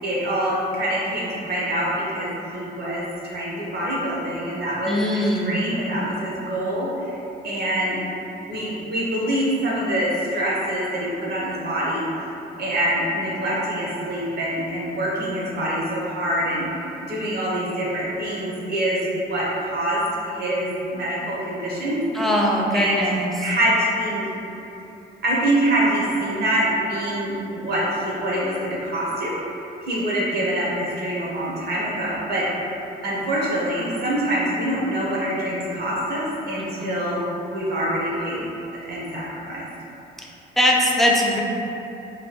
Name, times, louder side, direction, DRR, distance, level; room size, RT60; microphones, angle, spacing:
voice 1, 0.0-8.0 8.3-12.0 12.6-22.0 22.7-23.0 23.4-24.3 25.2-32.6 33.0-37.2 37.5-38.4 38.8-39.7, right 1 dB, 55° right, -5 dB, 0.8 m, -25 dB
voice 2, 4.9-5.6 22.1-23.3 36.8-36.9 40.6-41.4, equal, ahead, -3 dB, 0.4 m, -21 dB
3.1 x 2.2 x 2.9 m, 2.9 s
cardioid pair, 90°, 20 cm